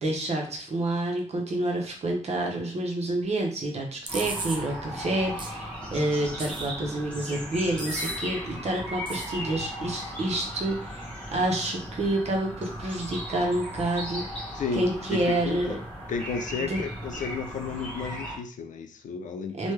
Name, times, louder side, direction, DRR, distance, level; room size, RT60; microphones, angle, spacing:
voice 1, 0.0-14.2 14.7-15.8 16.6-16.8 19.6-19.7, right 1 dB, 55° right, 1 dB, 0.8 m, -28 dB
sound 1, 4.1-18.4, equal, 10° left, 1.0 m, -37 dB
sound 2, 4.1-4.6 5.4-5.5 6.4-6.9 7.8-8.2 9.1-9.3, right 3 dB, 40° right, 0.4 m, -36 dB
voice 2, 14.5-15.8 16.1-19.7, left 5 dB, 80° left, 7 dB, 0.4 m, -33 dB
3.1 x 2.2 x 3.2 m, 0.42 s
wide cardioid pair, 155°, 13 cm